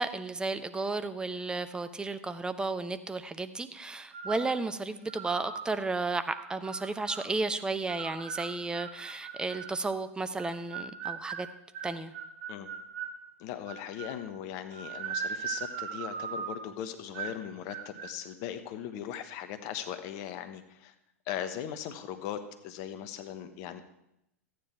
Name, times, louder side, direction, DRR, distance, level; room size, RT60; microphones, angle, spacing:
voice 1, 0.0-11.5 11.8-12.1, right 3 dB, 10° right, 11 dB, 0.8 m, -33 dB
sound 1, 4.1-4.5 5.1-5.7 6.3-7.3 7.9-9.8 10.4-13.2 13.7-14.2 14.7-16.7 17.1-17.4 17.7-18.1, right 7 dB, 55° right, 1.4 m, -39 dB
voice 2, 13.4-20.9 21.3-23.8, left 10 dB, 45° left, 9 dB, 1.2 m, -39 dB
14.0 x 9.6 x 4.6 m, 0.82 s
figure-of-eight pair, 90°, 8 cm